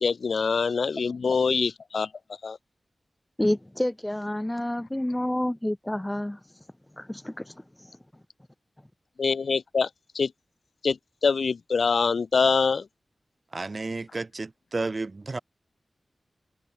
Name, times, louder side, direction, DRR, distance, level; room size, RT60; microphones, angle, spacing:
voice 1, 0.0-2.1 2.4-2.6 9.2-9.9 10.1-10.3 10.8-12.9, left 5 dB, 80° left, 0.3 m, -24 dB
voice 2, 3.4-6.4 7.0-7.5, left 1 dB, 15° left, 0.5 m, -28 dB
voice 3, 13.5-15.4, right 3 dB, 50° right, 0.5 m, -32 dB
cardioid pair, 40°, 0 cm